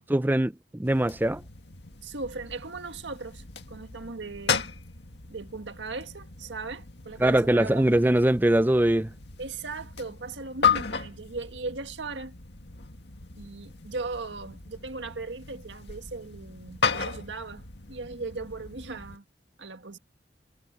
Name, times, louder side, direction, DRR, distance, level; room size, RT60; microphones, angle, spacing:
voice 1, 0.1-1.4 7.2-9.1, right 1 dB, 10° right, 0.5 m, -22 dB
sound 1, 0.8-19.2, left 6 dB, 70° left, 2.1 m, -35 dB
voice 2, 2.0-4.7 5.3-7.8 9.4-12.4 13.4-19.2 19.6-20.0, right 3 dB, 85° right, 1.7 m, -38 dB
head